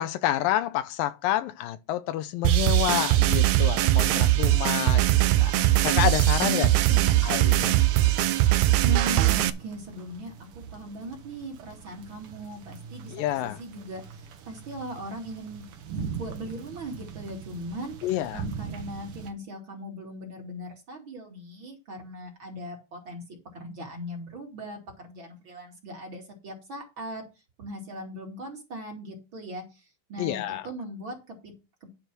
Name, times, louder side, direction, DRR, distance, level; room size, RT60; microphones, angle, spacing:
voice 1, 0.0-5.0 5.4-7.9 8.2-8.3 13.1-13.6 18.0-18.4 30.2-30.6, left 13 dB, 85° left, 2.5 m, -29 dB
sound 1, 2.4-9.5, right 15 dB, 80° right, 1.7 m, -21 dB
voice 2, 6.4-7.1 8.8-13.1 13.4-18.1 18.3-23.2 23.5-27.2 27.6-31.9, equal, 40° right, 2.8 m, -39 dB
sound 2, 7.8-19.3, right 7 dB, 60° right, 1.6 m, -42 dB
10.5 x 4.8 x 6.0 m
omnidirectional pair, 4.0 m